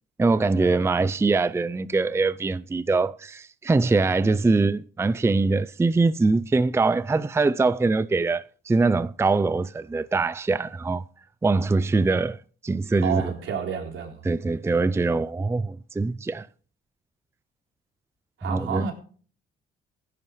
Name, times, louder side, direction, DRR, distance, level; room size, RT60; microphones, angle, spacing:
voice 1, 0.2-11.0 11.4-12.4 12.6-13.2 14.2-16.5 18.5-18.8, right 3 dB, 15° right, 0.5 m, -23 dB
voice 2, 13.0-14.3 18.4-18.9, right 7 dB, 80° right, 3.7 m, -30 dB
16.0 x 10.5 x 3.2 m
cardioid pair, 90°, 20 cm